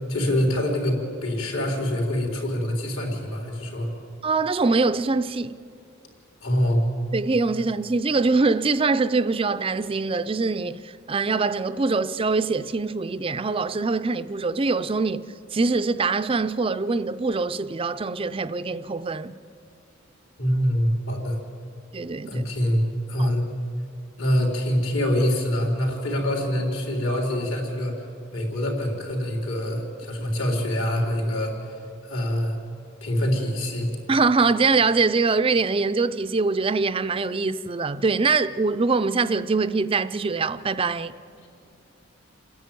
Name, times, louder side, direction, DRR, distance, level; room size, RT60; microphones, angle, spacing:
voice 1, 0.1-3.9 6.4-6.8 20.4-21.4 22.3-23.4 24.2-28.1 28.3-31.7 32.0-32.6 33.0-33.9, equal, 75° left, 4.1 m, -25 dB
voice 2, 4.2-5.6 7.1-15.2 15.5-19.3 21.9-22.4 23.2-23.3 34.1-41.1, right 4 dB, 25° right, 0.4 m, -23 dB
28.5 x 10.5 x 9.2 m
head